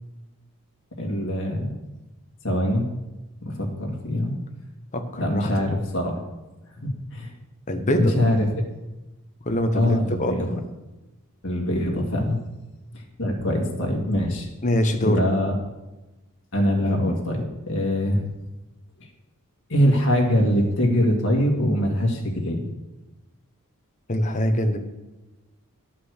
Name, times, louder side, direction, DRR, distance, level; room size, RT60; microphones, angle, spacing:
voice 1, 1.0-1.8 2.4-2.9 3.4-4.3 5.2-6.2 6.7-7.3 7.9-8.5 9.7-10.5 11.4-12.4 12.9-14.5 15.0-15.5 16.5-18.3 19.7-22.7, equal, 60° left, 0 dB, 2.1 m, -23 dB
voice 2, 4.9-5.8 7.7-8.3 9.4-10.3 14.6-15.2 24.1-24.8, equal, 35° left, 5 dB, 1.0 m, -24 dB
11.5 x 5.9 x 6.5 m, 1.1 s
head